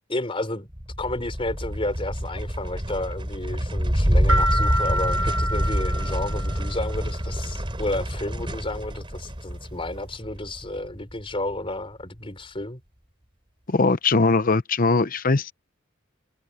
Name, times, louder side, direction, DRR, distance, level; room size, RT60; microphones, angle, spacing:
voice 1, 0.1-0.7 1.0-12.8, left 2 dB, 25° left, 4.9 m, -31 dB
sound 1, 0.7-11.3, equal, 25° right, 3.7 m, -27 dB
sound 2, 4.3-6.9, equal, 85° right, 1.7 m, -27 dB
voice 2, 13.7-15.5, left 3 dB, 40° left, 0.8 m, -20 dB
head